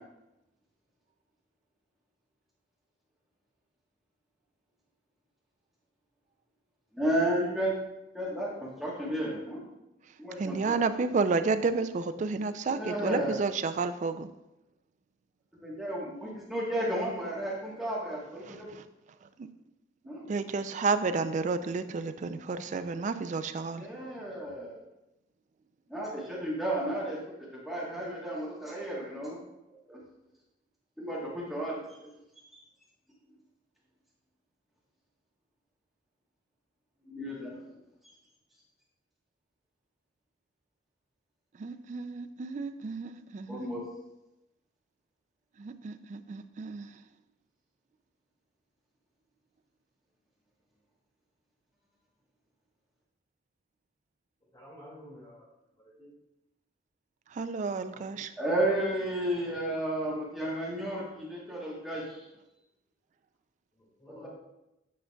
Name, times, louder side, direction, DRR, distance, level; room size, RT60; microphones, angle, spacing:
voice 1, 6.9-7.8 8.1-9.6 10.2-11.1 12.7-13.5 15.5-18.7 20.1-20.3 23.7-24.8 25.9-29.4 29.9-30.0 31.0-32.1 37.1-37.6 43.5-43.8 58.4-62.2 64.1-64.3, right 1 dB, ahead, -6 dB, 1.2 m, -33 dB
voice 2, 10.4-14.3 20.3-23.8 41.6-43.6 45.6-46.9 57.4-58.3, right 4 dB, 40° right, 10 dB, 0.3 m, -31 dB
voice 3, 54.5-55.5 56.0-56.1 57.9-58.1 59.3-59.5 63.8-64.3, left 1 dB, 25° left, -5 dB, 2.0 m, -51 dB
8.6 x 5.1 x 2.3 m, 0.92 s
head